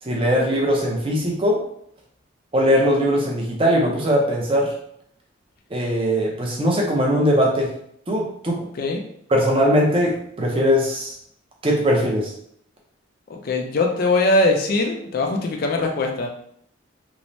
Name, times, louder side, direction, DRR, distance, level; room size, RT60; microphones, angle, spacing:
voice 1, 0.1-1.6 2.5-4.7 5.7-7.7 8.1-8.6 9.3-11.1 11.6-12.3, equal, 25° right, -2 dB, 0.5 m, -20 dB
voice 2, 13.3-16.3, left 2 dB, 45° left, 2 dB, 0.3 m, -21 dB
3.0 x 2.1 x 2.6 m, 0.70 s
head